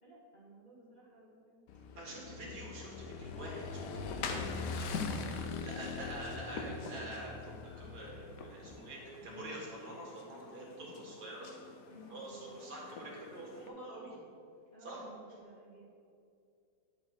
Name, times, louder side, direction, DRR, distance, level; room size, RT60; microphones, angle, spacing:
voice 1, 0.0-1.7 2.0-2.7 9.3-9.6 11.9-12.6 14.7-15.8, equal, 25° left, -7 dB, 1.7 m, -56 dB
Motorcycle / Engine, 1.7-8.7, left 4 dB, 85° left, 1.3 m, -42 dB
voice 2, 2.0-11.6 12.1-14.2 14.8-15.0, right 1 dB, 70° right, -3 dB, 2.1 m, -46 dB
sound 1, 3.7-13.7, left 4 dB, 65° left, 1.1 m, -46 dB
9.7 x 4.4 x 4.4 m, 2.5 s
omnidirectional pair, 1.8 m